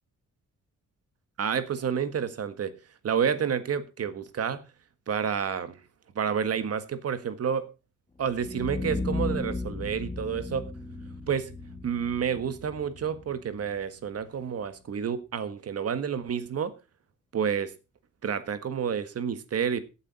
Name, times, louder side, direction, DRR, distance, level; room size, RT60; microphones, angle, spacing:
voice 1, 1.4-2.7 3.0-4.6 5.1-5.8 6.1-7.7 8.2-10.7 11.3-11.5 11.8-16.7 17.3-17.7 18.2-19.8, right 7 dB, 50° right, 1.6 m, -29 dB
sound 1, 8.2-14.2, left 2 dB, 15° left, 2.1 m, -35 dB
15.5 x 9.0 x 4.2 m
wide cardioid pair, 160°, 31 cm